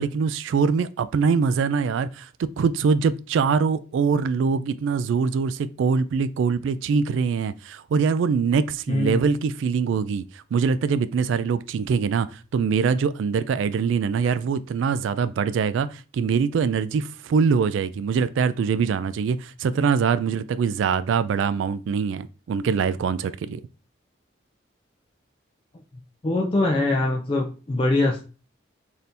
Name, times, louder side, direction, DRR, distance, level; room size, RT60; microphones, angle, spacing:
voice 1, 0.0-23.6, right 5 dB, 80° right, 0.3 m, -23 dB
voice 2, 8.9-9.2 26.2-28.2, left 2 dB, 25° left, 0.4 m, -22 dB
4.1 x 2.7 x 3.3 m
head